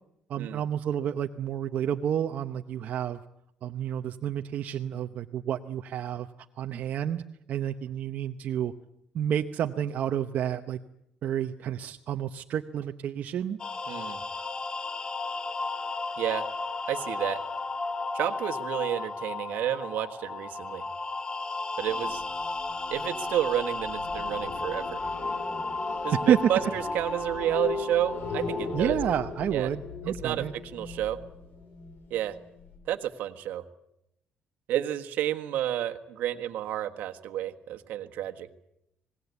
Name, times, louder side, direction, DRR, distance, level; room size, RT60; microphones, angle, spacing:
voice 1, 0.3-3.2 3.6-6.3 6.6-7.2 7.5-8.7 9.1-10.8 11.2-13.6 26.3-26.4 28.7-30.5, right 9 dB, 65° right, 6 dB, 0.9 m, -30 dB
sound 1, 13.6-28.9, left 3 dB, 30° left, 1.2 m, -34 dB
voice 2, 13.9-14.2 16.2-16.5 16.9-17.4 18.1-20.8 21.8-22.2 22.9-25.0 26.0-29.0 29.5-29.7 30.1-31.2 32.1-32.3 32.9-33.6 34.7-38.5, right 12 dB, 80° right, 8 dB, 1.5 m, -30 dB
sound 2, 21.8-32.8, left 5 dB, 80° left, 5.8 m, -39 dB
26.5 x 19.5 x 8.3 m, 0.81 s
cardioid pair, 100°, 3 cm